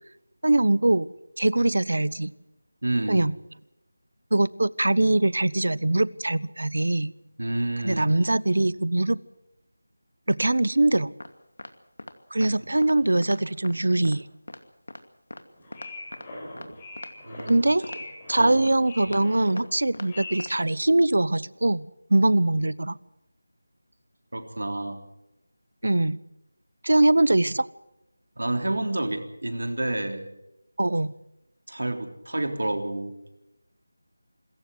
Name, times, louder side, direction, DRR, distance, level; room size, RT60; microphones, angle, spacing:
voice 1, 0.4-1.1 1.4-2.3 3.1-3.3 4.3-7.1 7.8-9.2 10.3-11.1 12.3-14.2 17.5-17.8 18.3-23.0 25.8-26.2 26.8-27.7 30.8-31.1, right 2 dB, 70° right, 21 dB, 0.8 m, -22 dB
voice 2, 2.8-3.3 7.4-8.1 12.8-12.9 17.3-17.7 18.4-18.7 24.3-25.0 28.4-30.3 31.7-33.1, right 1 dB, 85° right, 5 dB, 3.7 m, -29 dB
sound 1, 11.2-11.3 11.6-11.7 12.0-12.1 12.4-12.5 12.8-13.0 13.2-13.4 13.6-13.7 14.1-14.2 14.5-14.6 14.9-15.0 15.3-15.4 15.7-16.3 16.6-16.7 17.0-17.1 17.4-17.6 17.8-18.0 18.3-18.4 18.7-18.8 19.1-19.2 19.6-19.7 19.9-20.1 20.4-20.5, left 2 dB, 70° left, 2.5 m, -40 dB
sound 2, 15.5-20.6, left 1 dB, 10° left, 5.5 m, -40 dB
26.5 x 14.5 x 7.9 m, 0.88 s
figure-of-eight pair, 180°, 0 cm